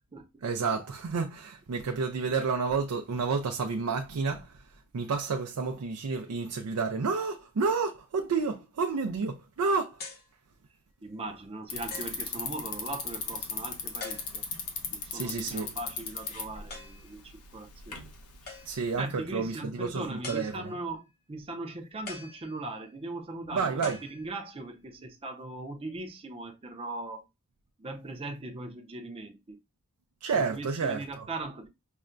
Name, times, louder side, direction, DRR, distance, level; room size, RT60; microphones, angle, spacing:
voice 1, 0.4-4.6 4.9-10.0 15.1-15.7 18.7-20.7 23.5-24.0 30.2-31.3, right 4 dB, 85° right, 0.4 m, -30 dB
sound 1, 10.0-10.3 11.1-11.2 11.9-12.3 14.0-14.6 16.7-17.1 18.5-19.0 20.2-20.9 22.1-22.9 23.8-24.7, left 4 dB, 45° left, 0.8 m, -44 dB
voice 2, 11.0-14.4 14.9-18.1 19.0-27.2 27.8-29.6 30.3-31.7, right 2 dB, 25° right, 0.5 m, -39 dB
Bicycle, 11.7-19.0, left 5 dB, 85° left, 0.8 m, -38 dB
5.5 x 2.1 x 2.5 m
head